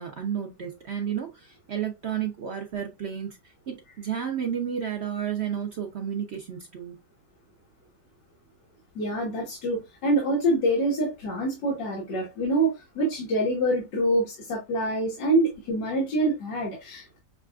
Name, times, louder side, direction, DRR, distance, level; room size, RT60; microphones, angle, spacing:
voice 1, 0.0-3.4 3.7-7.0, right 8 dB, 75° right, 0.6 m, -32 dB
voice 2, 9.0-17.2, right 1 dB, 70° left, 2.0 m, -26 dB
6.6 x 2.4 x 2.3 m
omnidirectional pair, 2.0 m